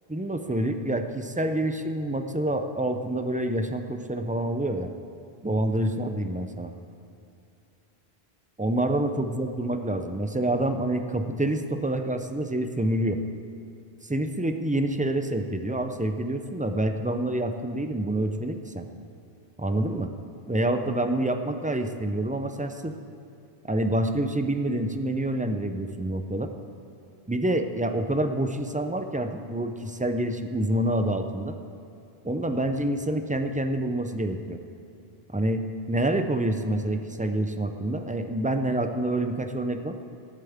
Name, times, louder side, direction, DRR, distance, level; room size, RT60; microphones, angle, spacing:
voice 1, 0.1-4.9 5.4-6.7 8.6-13.2 14.0-18.8 19.6-20.1 20.5-22.9 23.7-26.5 27.3-31.6 32.2-34.6 35.3-40.0, right 1 dB, 15° right, 7 dB, 0.3 m, -27 dB
18.5 x 11.5 x 3.6 m, 2.6 s
omnidirectional pair, 1.0 m